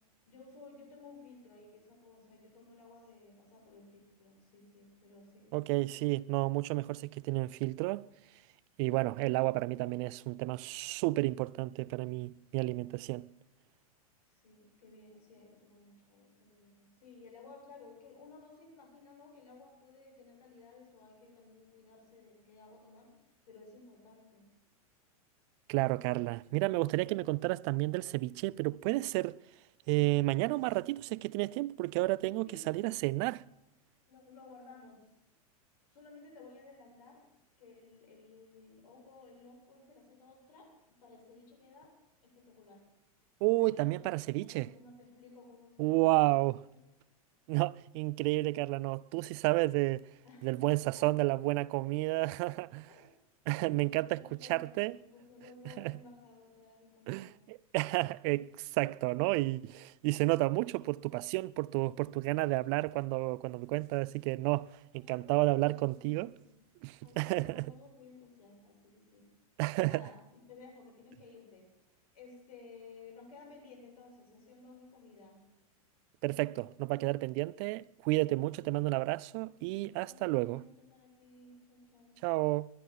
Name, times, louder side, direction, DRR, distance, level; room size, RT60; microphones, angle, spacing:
voice 1, 0.3-5.8 14.3-23.1 23.5-24.4 32.5-32.7 34.1-35.0 35.9-37.2 37.6-41.9 42.2-42.8 43.6-46.3 50.2-50.5 51.0-51.3 52.5-52.6 52.9-53.1 54.0-57.4 65.0-66.0 66.3-66.6 67.0-69.3 69.8-70.2 70.5-71.7 72.1-75.4 80.0-82.2, left 3 dB, 75° left, 8.0 m, -56 dB
voice 2, 5.5-8.1 8.8-13.3 25.7-29.4 29.9-33.4 43.4-44.7 45.8-46.6 47.5-50.1 50.4-52.9 53.5-55.0 55.7-56.0 57.1-66.3 66.8-67.7 69.6-70.0 76.2-80.6 82.2-82.7, right 21 dB, 50° right, 0.5 m, -31 dB
21.0 x 11.5 x 5.8 m
hypercardioid pair, 110°, 19 cm